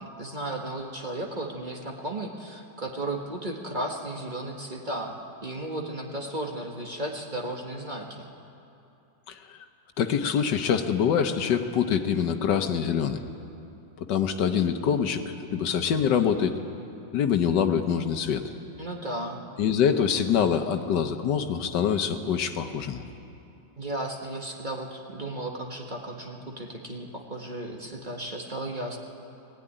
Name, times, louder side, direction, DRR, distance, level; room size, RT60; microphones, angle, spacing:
voice 1, 0.0-5.1 5.4-8.3 18.8-19.4 23.8-29.0, right 1 dB, 25° right, 0 dB, 1.6 m, -34 dB
voice 2, 9.3-9.6 10.0-13.2 14.0-16.5 17.1-18.4 19.6-23.0, left 7 dB, 70° left, 7 dB, 1.5 m, -25 dB
20.0 x 14.5 x 10.0 m, 2.7 s
omnidirectional pair, 2.0 m